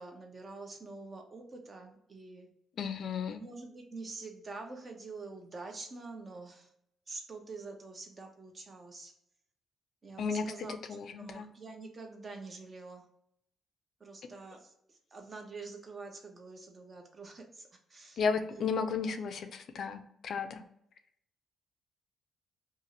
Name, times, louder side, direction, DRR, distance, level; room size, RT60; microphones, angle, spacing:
voice 1, 0.0-2.5 3.3-6.7 7.1-9.1 10.0-10.8 11.2-13.0 14.0-14.7 15.1-18.2 18.5-18.7, right 3 dB, 35° right, 3 dB, 0.7 m, -46 dB
voice 2, 2.8-3.4 10.2-10.5 10.9-11.5 18.2-20.6, left 5 dB, 60° left, 8 dB, 0.3 m, -33 dB
2.6 x 2.4 x 2.9 m, 0.75 s
cardioid pair, 90°, 0 cm